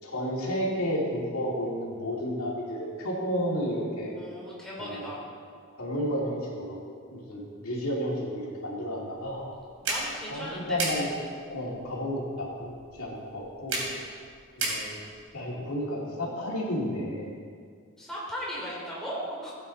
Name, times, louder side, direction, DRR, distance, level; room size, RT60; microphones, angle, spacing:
voice 1, 0.0-4.1 4.8-5.2 5.8-6.8 7.1-9.4 10.3-11.1 11.5-12.7 13.0-13.8 14.6-15.0 15.3-17.3, equal, 90° left, -4 dB, 2.7 m, -31 dB
voice 2, 4.1-5.2 9.8-10.8 18.0-19.5, equal, ahead, -6 dB, 3.2 m, -37 dB
sound 1, 9.1-15.3, right 2 dB, 85° right, 3.1 m, -36 dB
15.0 x 8.7 x 4.2 m, 2.1 s
head